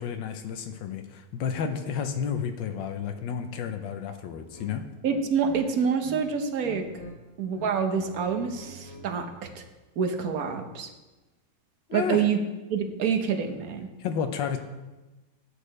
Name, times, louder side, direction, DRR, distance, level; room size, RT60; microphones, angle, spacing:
voice 1, 0.0-4.8 11.9-12.2 14.0-14.6, left 7 dB, 85° left, 7 dB, 1.5 m, -31 dB
sound 1, 4.5-4.7 5.1-6.2 6.5-7.1 7.4-9.3, left 1 dB, 30° left, 1.5 m, -45 dB
voice 2, 5.0-6.8 7.4-9.6 10.0-10.9 11.9-12.4 12.7-13.9, right 6 dB, 60° right, 7 dB, 1.2 m, -27 dB
11.5 x 8.3 x 3.3 m, 1.1 s
omnidirectional pair, 2.0 m